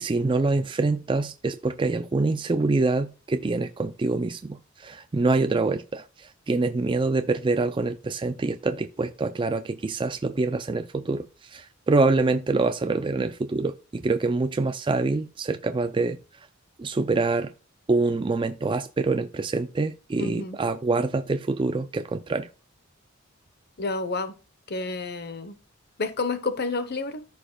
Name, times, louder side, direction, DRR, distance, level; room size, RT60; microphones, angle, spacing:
voice 1, 0.0-6.0 6.5-16.2 16.8-17.5 17.9-22.5, right 3 dB, 25° right, 0.4 m, -25 dB
voice 2, 20.2-20.6 23.8-24.4 24.7-25.6 26.0-27.3, left 3 dB, 50° left, 1.0 m, -30 dB
14.0 x 5.1 x 2.3 m
head